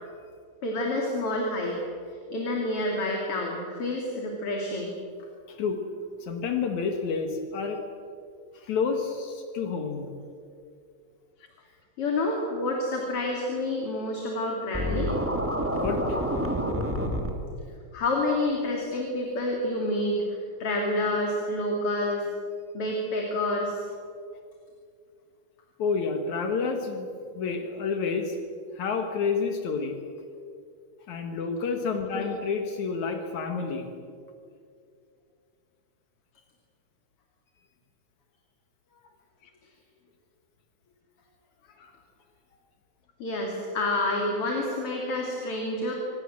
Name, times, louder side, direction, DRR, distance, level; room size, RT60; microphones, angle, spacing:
voice 1, 0.6-1.8 2.3-4.9 12.0-15.1 17.9-20.2 20.6-22.3 22.7-23.9 32.1-32.3 43.2-45.9, left 1 dB, 50° left, -1 dB, 3.7 m, -28 dB
voice 2, 5.5-5.8 6.2-7.8 8.5-10.1 15.8-16.2 25.8-27.1 27.3-28.4 28.7-30.0 31.1-33.9 41.8-41.9, left 5 dB, 75° left, 4 dB, 3.1 m, -29 dB
Scratching (performance technique), 14.7-17.3, equal, 5° right, 2.5 m, -28 dB
26.5 x 20.0 x 7.6 m, 2.4 s
omnidirectional pair, 3.4 m